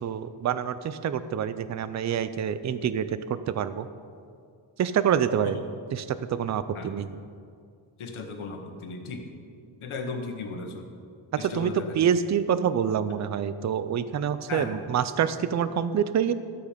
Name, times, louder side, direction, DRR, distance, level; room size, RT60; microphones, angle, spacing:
voice 1, 0.0-3.9 4.8-5.6 5.9-7.1 11.3-16.3, right 8 dB, 40° right, 13 dB, 0.4 m, -26 dB
voice 2, 8.0-9.3 9.8-10.9 11.4-12.0 14.5-14.8, left 4 dB, 80° left, 5 dB, 1.4 m, -36 dB
13.0 x 8.2 x 5.1 m, 2.2 s
wide cardioid pair, 160°, 49 cm